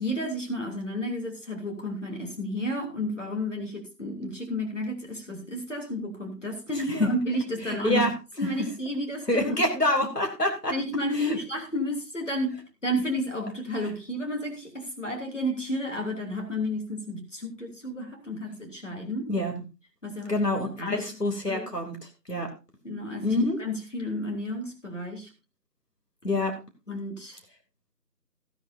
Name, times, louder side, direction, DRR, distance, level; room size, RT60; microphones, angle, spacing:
voice 1, 0.0-8.0 8.4-9.6 10.7-19.3 20.0-20.4 20.8-21.0 21.5-21.7 22.8-25.3 26.9-27.4, left 1 dB, 45° left, 1 dB, 3.1 m, -32 dB
voice 2, 6.7-7.1 7.6-8.1 9.3-10.7 11.1-11.4 19.3-19.5 20.3-22.5 23.2-23.6 26.2-26.5, left 1 dB, 70° left, 3 dB, 2.8 m, -26 dB
16.5 x 10.5 x 2.7 m, 0.30 s
figure-of-eight pair, 175°, 49 cm